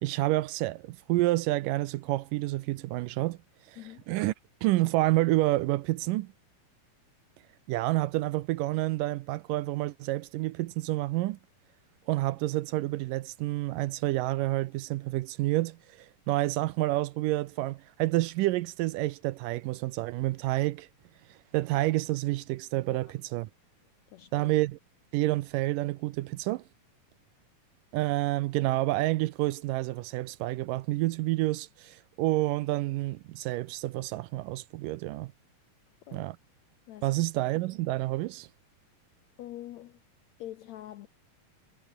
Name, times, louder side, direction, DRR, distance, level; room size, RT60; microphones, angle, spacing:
voice 1, 0.0-3.4 3.7-3.8 4.1-4.3 4.6-6.3 7.7-11.4 12.1-20.9 21.5-23.5 24.3-24.8 25.1-26.6 27.9-35.3 36.1-36.4 37.0-38.5, right 18 dB, 80° right, 2.2 m, -29 dB
voice 2, 24.1-24.6 36.1-36.3 36.9-37.2 39.4-40.0 40.4-41.1, left 13 dB, 75° left, 1.6 m, -44 dB
omnidirectional pair, 4.1 m